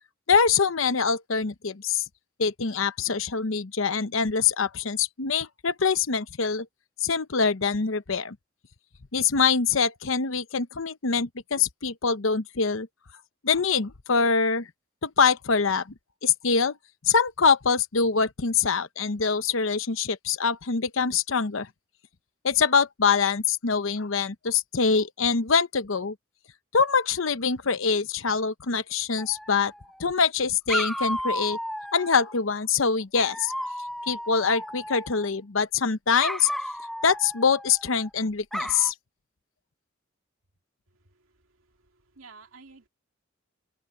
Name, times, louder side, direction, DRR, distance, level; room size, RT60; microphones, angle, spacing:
voice 1, 0.3-2.0 2.4-6.7 7.0-8.4 9.1-12.9 13.4-14.7 15.0-15.9 16.2-16.7 17.0-21.7 22.4-26.1 26.7-29.7 30.0-31.6 31.9-33.5 34.1-36.5 37.0-38.9, left 5 dB, 75° left, 0.9 m, -24 dB
Dog, 29.2-30.0 30.7-32.3 33.1-35.3 36.2-38.1 38.5-38.9, equal, ahead, 0.6 m, -33 dB
voice 2, 41.8-42.9, right 4 dB, 85° right, 2.5 m, -51 dB
open air
head